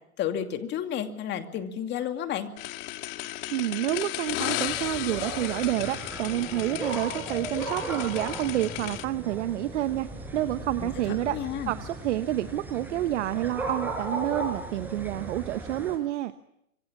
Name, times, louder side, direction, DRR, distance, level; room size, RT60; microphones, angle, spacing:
voice 1, 0.2-2.5 10.8-10.9 11.2-11.7, left 9 dB, 25° left, 7 dB, 2.5 m, -31 dB
sound 1, 2.6-9.0, left 16 dB, 40° left, 1.9 m, -35 dB
voice 2, 3.5-16.3, right 14 dB, 55° right, 11 dB, 1.2 m, -29 dB
sound 2, 4.7-16.0, right 2 dB, 5° right, 6.0 m, -37 dB
26.0 x 23.5 x 7.3 m, 0.80 s
hypercardioid pair, 130°, 43 cm